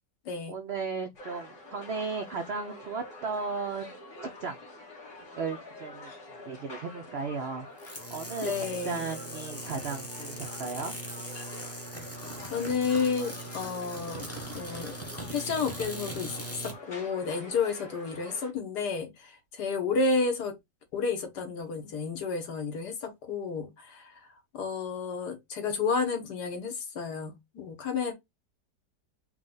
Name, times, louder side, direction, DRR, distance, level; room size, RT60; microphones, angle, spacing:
voice 1, 0.5-3.9 4.2-4.6 5.4-7.7 8.1-10.9, right 4 dB, 90° right, 0.5 m, -35 dB
sound 1, 1.1-18.5, left 2 dB, 45° left, 1.9 m, -46 dB
sound 2, 7.8-16.8, right 1 dB, 15° left, 0.6 m, -40 dB
voice 2, 8.4-9.0 12.5-14.2 14.5-14.9 15.3-16.4 16.6-20.6 20.9-24.2 24.5-28.1, left 4 dB, 70° left, 1.6 m, -31 dB
4.6 x 2.3 x 3.8 m
omnidirectional pair, 1.9 m